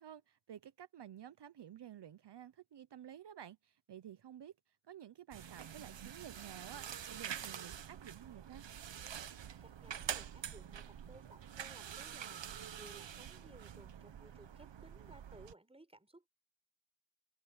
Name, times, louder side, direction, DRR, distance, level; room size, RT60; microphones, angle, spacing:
voice 1, 0.0-8.6, right 10 dB, 70° right, 0.8 m, -52 dB
sound 1, 5.3-15.5, right 9 dB, 85° right, 1.1 m, -46 dB
voice 2, 9.6-12.4 12.7-16.3, right 1 dB, 15° right, 4.2 m, -59 dB
wide cardioid pair, 125°, 43 cm